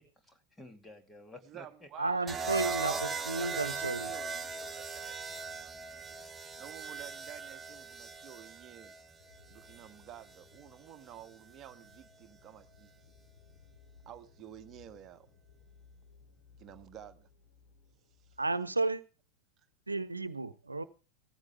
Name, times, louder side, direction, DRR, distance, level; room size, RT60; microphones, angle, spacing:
voice 1, 0.0-2.1, left 2 dB, 10° left, 2.4 m, -53 dB
voice 2, 1.5-6.2 6.6-8.9 9.5-12.9 14.0-15.3 16.6-17.3, right 10 dB, 30° right, 1.4 m, -50 dB
voice 3, 2.0-2.9 3.3-4.1 18.4-19.0 19.9-20.8, right 3 dB, 80° right, 1.0 m, -32 dB
sound 1, 2.3-10.4 11.6-12.0, right 4 dB, 15° right, 0.9 m, -39 dB
sound 2, 9.2-18.5, left 4 dB, 50° left, 7.1 m, -61 dB
17.5 x 14.5 x 3.4 m
figure-of-eight pair, 90°, 0 cm